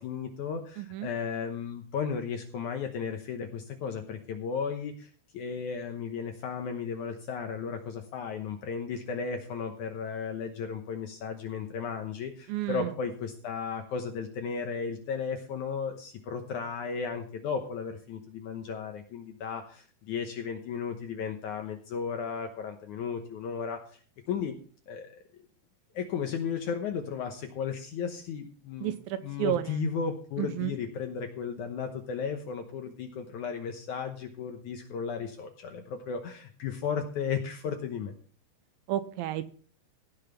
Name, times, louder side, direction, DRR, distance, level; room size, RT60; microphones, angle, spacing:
voice 1, 0.0-24.0 24.3-24.5 24.9-25.2 25.9-28.9 29.2-38.2, left 6 dB, 70° left, 5 dB, 2.0 m, -35 dB
voice 2, 0.8-1.1 12.5-12.9 28.8-29.8 30.4-30.7 38.9-39.5, right 13 dB, 80° right, 11 dB, 2.3 m, -31 dB
15.5 x 5.7 x 5.7 m, 0.43 s
omnidirectional pair, 4.5 m